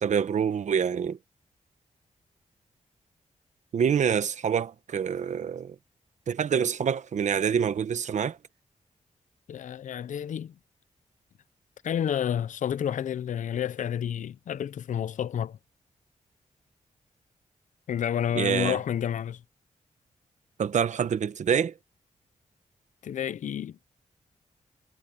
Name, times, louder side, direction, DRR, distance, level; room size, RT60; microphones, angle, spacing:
voice 1, 0.0-1.2 3.7-5.7 6.3-8.4 18.3-18.8 20.6-21.7, right 7 dB, 70° right, 1.1 m, -26 dB
voice 2, 9.5-10.5 11.8-15.6 17.9-19.4 23.0-23.8, left 9 dB, 80° left, 0.6 m, -30 dB
wide cardioid pair, 120°, 13 cm